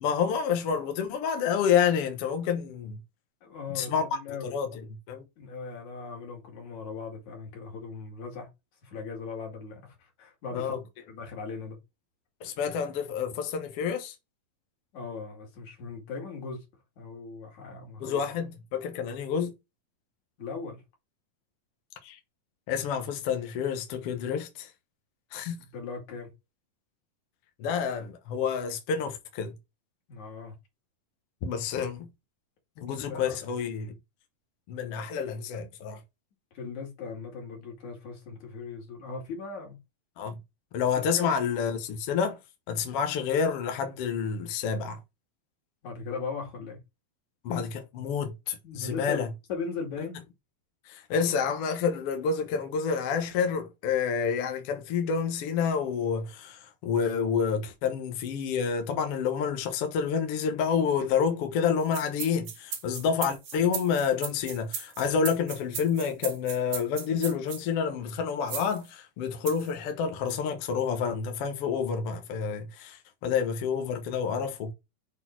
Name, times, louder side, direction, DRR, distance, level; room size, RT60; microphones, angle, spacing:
voice 1, 0.0-3.0 3.7-4.0 4.4-4.8 5.1-5.2 10.5-10.8 12.4-14.1 18.0-19.5 22.0-22.2 22.7-24.7 25.3-25.6 27.6-29.5 31.4-32.1 32.8-33.9 34.7-36.0 40.2-40.4 40.7-42.4 42.7-45.0 47.4-49.3 50.8-74.7, left 6 dB, 70° left, 1.4 m, -29 dB
voice 2, 3.4-4.6 5.4-8.5 8.8-10.7 11.1-11.8 14.9-16.6 17.0-18.2 20.4-20.8 25.6-26.3 30.1-30.5 32.8-33.3 36.5-39.8 41.0-41.3 45.8-46.8 48.6-49.2 49.5-50.2, left 5 dB, 55° left, 3.5 m, -38 dB
sound 1, 61.8-67.6 68.5-68.8 69.4-69.7 70.3-70.4, right 7 dB, 65° right, 1.3 m, -37 dB
6.6 x 4.0 x 4.4 m
omnidirectional pair, 4.1 m